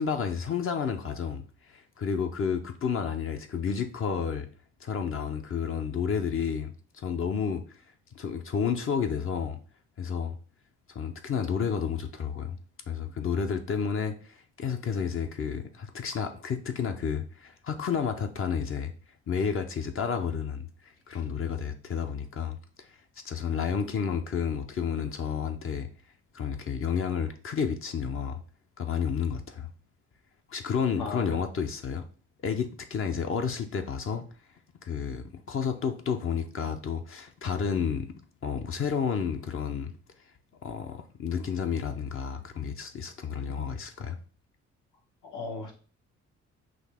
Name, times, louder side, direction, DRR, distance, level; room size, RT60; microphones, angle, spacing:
voice 1, 0.0-4.5 4.8-7.6 8.1-9.6 10.0-10.4 10.9-12.6 12.9-18.9 19.3-23.0 23.2-25.9 26.3-28.4 28.8-29.7 30.5-32.0 32.4-34.2 34.8-38.1 38.4-39.9 40.6-44.2, left 6 dB, 45° left, 0.6 m, -31 dB
voice 2, 31.0-31.4 45.2-45.8, left 3 dB, 75° left, 1.5 m, -37 dB
6.1 x 2.4 x 3.5 m
cardioid pair, 90°, 30 cm